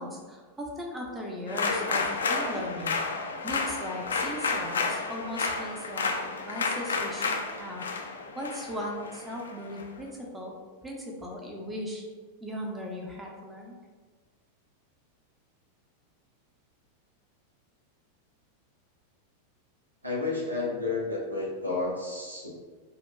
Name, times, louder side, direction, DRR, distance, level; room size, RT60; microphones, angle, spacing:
voice 1, 0.0-3.2 3.4-6.1 6.4-7.8 8.4-10.6 10.8-12.0 12.4-13.8, equal, 10° right, -1 dB, 0.6 m, -37 dB
sound 1, 1.5-9.8, left 4 dB, 70° left, 0.3 m, -31 dB
voice 2, 20.0-22.5, left 3 dB, 85° right, -4 dB, 0.8 m, -31 dB
4.9 x 2.2 x 2.2 m, 1.4 s
figure-of-eight pair, 90°, 0 cm